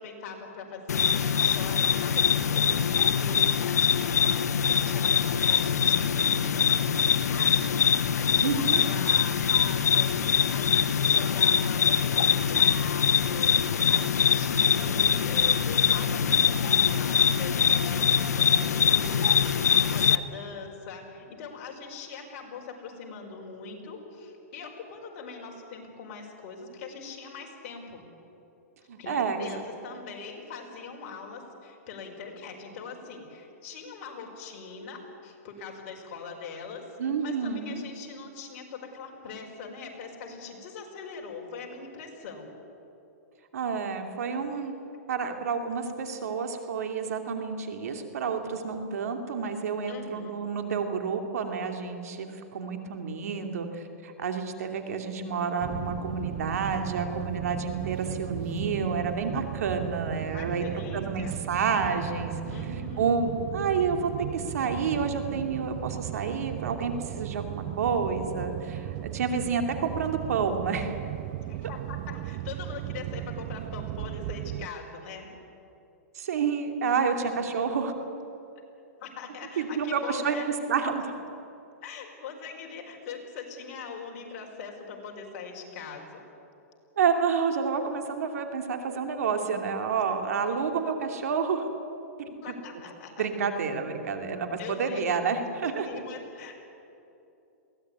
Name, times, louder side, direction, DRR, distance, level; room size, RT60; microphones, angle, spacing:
voice 1, 0.0-28.0 29.0-36.8 37.2-42.5 44.5-44.7 49.9-50.3 60.3-61.4 62.5-63.1 71.5-75.3 77.1-77.2 79.0-80.5 81.8-86.0 90.7-90.8 92.2-93.3 94.6-95.0 95.6-96.6, left 5 dB, 45° left, 1 dB, 4.8 m, -41 dB
Night Ambience, 0.9-20.2, left 7 dB, 90° left, 1.0 m, -23 dB
voice 2, 8.4-8.8 28.9-29.5 37.0-37.8 43.5-44.8 45.1-60.6 60.9-62.3 63.0-71.0 76.1-77.9 79.6-80.4 80.7-81.1 87.0-91.6 92.2-92.3 93.2-95.9, right 5 dB, 70° right, 5 dB, 2.8 m, -29 dB
sound 1, 55.6-74.7, right 16 dB, 35° right, 0.5 m, -36 dB
22.0 x 17.0 x 9.5 m, 2.8 s
hypercardioid pair, 150°, 9 cm